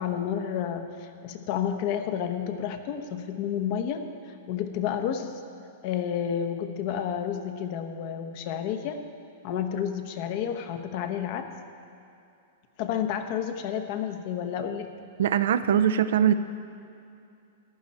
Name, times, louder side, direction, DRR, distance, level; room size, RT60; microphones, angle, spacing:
voice 1, 0.0-5.4 5.8-9.0 9.4-11.5 12.8-14.9, left 8 dB, 50° left, 7 dB, 1.0 m, -30 dB
voice 2, 15.2-16.3, right 9 dB, 70° right, 12 dB, 0.5 m, -22 dB
14.5 x 10.5 x 4.3 m, 2.5 s
hypercardioid pair, 130°, 0 cm